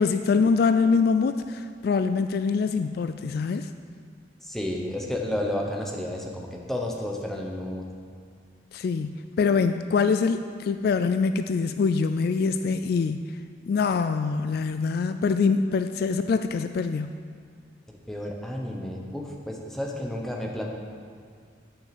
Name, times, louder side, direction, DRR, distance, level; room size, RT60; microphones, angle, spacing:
voice 1, 0.0-3.7 8.7-13.3 13.7-17.1, left 5 dB, 55° left, 9 dB, 0.3 m, -24 dB
voice 2, 4.4-7.8 17.9-20.7, left 1 dB, ahead, -1 dB, 1.0 m, -31 dB
8.8 x 6.5 x 6.8 m, 2.2 s
head